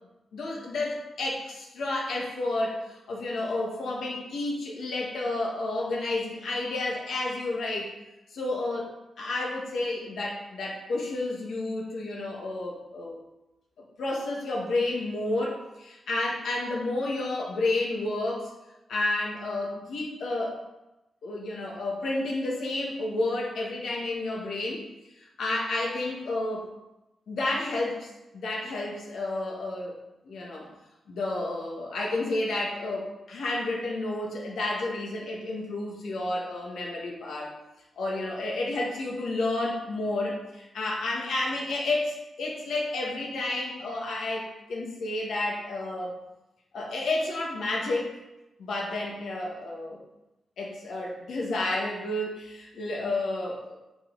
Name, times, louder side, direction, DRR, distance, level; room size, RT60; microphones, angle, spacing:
voice 1, 0.3-7.9 8.3-8.9 9.2-13.2 14.0-18.5 18.9-20.6 21.2-24.8 25.2-26.7 27.3-28.1 28.4-29.9 30.2-30.7 31.1-37.5 38.0-46.2 46.7-48.2 48.6-50.0 50.6-53.8, left 2 dB, 75° left, -2 dB, 1.6 m, -31 dB
8.9 x 4.3 x 3.9 m, 0.98 s
wide cardioid pair, 170°, 0 cm